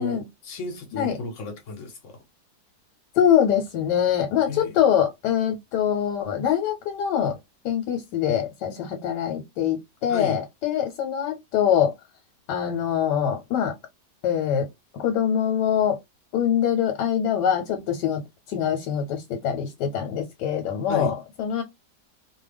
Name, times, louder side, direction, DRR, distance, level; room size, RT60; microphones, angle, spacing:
voice 1, 0.0-2.2 4.5-4.9 10.1-10.4 20.9-21.1, left 3 dB, 55° left, 1.1 m, -33 dB
voice 2, 3.2-7.4 7.6-11.9 12.5-13.7 14.2-14.7 14.9-16.0 16.3-18.2 18.5-21.6, left 9 dB, 90° left, 1.3 m, -24 dB
2.8 x 2.2 x 3.3 m
omnidirectional pair, 1.8 m